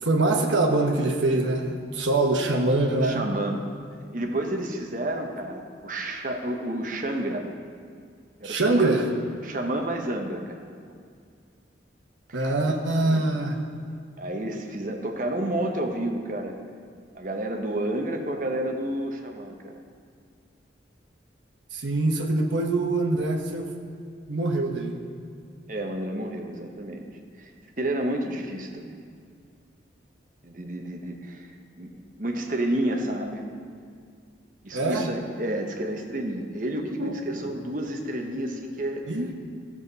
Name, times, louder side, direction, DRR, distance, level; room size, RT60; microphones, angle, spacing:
voice 1, 0.0-3.2 8.4-9.1 12.3-13.6 21.7-23.7 24.3-25.1 34.7-35.1 37.0-37.4 39.1-39.3, right 2 dB, 85° right, 2 dB, 1.2 m, -24 dB
voice 2, 3.0-3.6 4.1-7.5 8.4-8.9 9.4-10.6 12.3-12.7 13.0-13.2 14.2-16.5 17.1-19.8 25.7-27.0 27.4-27.5 27.8-29.0 30.4-33.4 34.6-39.0, right 1 dB, 45° right, 3 dB, 1.0 m, -30 dB
14.5 x 7.3 x 4.1 m, 2.2 s
head